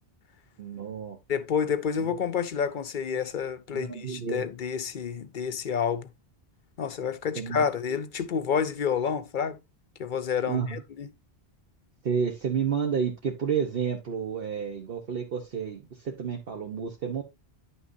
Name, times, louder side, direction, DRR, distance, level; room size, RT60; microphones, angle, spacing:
voice 1, 0.6-1.2 2.0-2.2 3.7-4.4 7.3-7.6 10.5-10.8 12.0-17.2, right 7 dB, 60° right, 1.1 m, -30 dB
voice 2, 1.3-6.1 6.8-9.6 10.0-11.1, left 7 dB, 55° left, 0.7 m, -29 dB
9.7 x 5.9 x 2.6 m
omnidirectional pair, 1.1 m